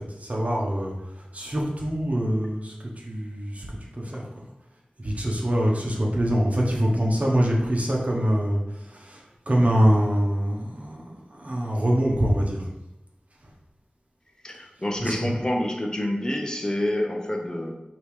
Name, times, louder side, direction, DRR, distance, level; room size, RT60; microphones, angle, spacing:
voice 1, 0.0-3.7 3.9-4.2 5.0-12.7 15.0-15.3, equal, 50° right, -2 dB, 1.0 m, -24 dB
voice 2, 14.4-17.8, left 1 dB, 25° left, 2 dB, 0.7 m, -27 dB
5.3 x 2.9 x 3.3 m, 0.89 s
wide cardioid pair, 50°, 3 cm